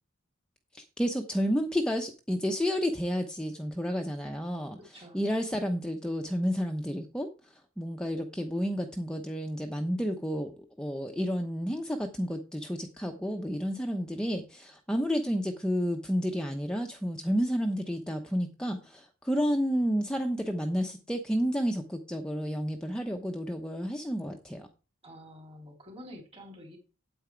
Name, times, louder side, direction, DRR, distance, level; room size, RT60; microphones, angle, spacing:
voice 1, 0.7-24.7, equal, 5° left, 2 dB, 0.9 m, -31 dB
voice 2, 4.7-5.2 5.5-5.6 25.0-26.8, equal, 30° right, 3 dB, 3.3 m, -48 dB
8.9 x 8.7 x 4.6 m, 0.32 s
head